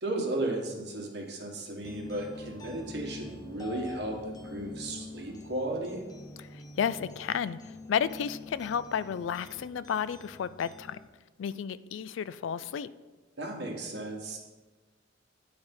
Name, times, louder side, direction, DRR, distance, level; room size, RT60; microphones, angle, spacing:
voice 1, 0.0-6.0 13.4-14.4, right 1 dB, 60° right, -1 dB, 1.5 m, -35 dB
sound 1, 1.8-11.1, left 2 dB, 20° left, 0.6 m, -46 dB
voice 2, 6.4-11.0 11.4-12.9, left 7 dB, 90° left, 16 dB, 0.3 m, -32 dB
10.0 x 3.5 x 5.4 m, 1.2 s
head